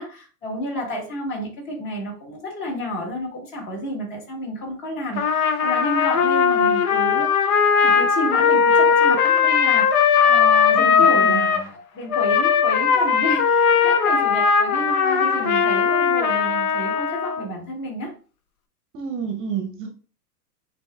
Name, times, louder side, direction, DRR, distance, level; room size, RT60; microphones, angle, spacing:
voice 1, 0.0-7.3 7.8-18.1, equal, 45° left, -1 dB, 2.5 m, -30 dB
Trumpet, 5.2-11.6 12.1-17.4, left 6 dB, 65° left, 0.9 m, -18 dB
voice 2, 10.7-11.4 18.9-19.9, right 7 dB, 30° right, 4 dB, 0.7 m, -29 dB
7.3 x 2.7 x 2.4 m, 0.37 s
hypercardioid pair, 115°, 46 cm